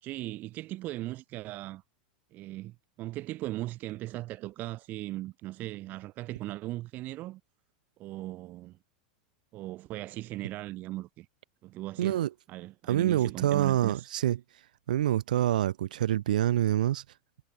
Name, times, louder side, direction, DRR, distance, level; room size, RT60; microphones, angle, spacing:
voice 1, 0.0-1.8 2.3-7.4 8.0-8.8 9.5-11.3 11.6-14.1, right 17 dB, 40° right, 0.6 m, -38 dB
voice 2, 12.0-12.3 12.9-14.4 14.9-17.0, right 12 dB, 80° right, 1.2 m, -26 dB
hypercardioid pair, 115°, 4 cm